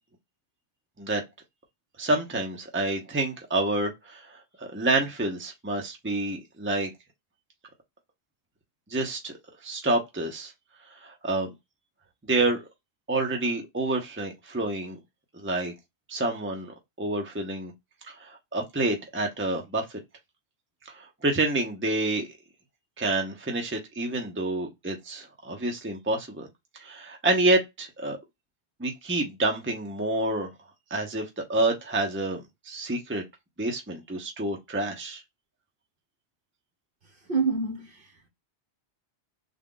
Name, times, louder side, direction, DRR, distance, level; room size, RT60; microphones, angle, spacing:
voice 1, 2.0-4.3 4.6-6.9 8.9-9.3 9.6-10.5 10.9-11.5 12.3-12.6 13.1-15.0 15.3-15.7 16.1-17.7 18.1-19.8 20.9-22.3 23.0-26.5 26.7-28.2 28.8-30.5 30.9-33.2 33.6-35.2, right 2 dB, 10° right, 0.8 m, -28 dB
voice 2, 37.0-38.3, right 4 dB, 50° right, 1.4 m, -29 dB
3.7 x 2.4 x 3.7 m
omnidirectional pair, 1.1 m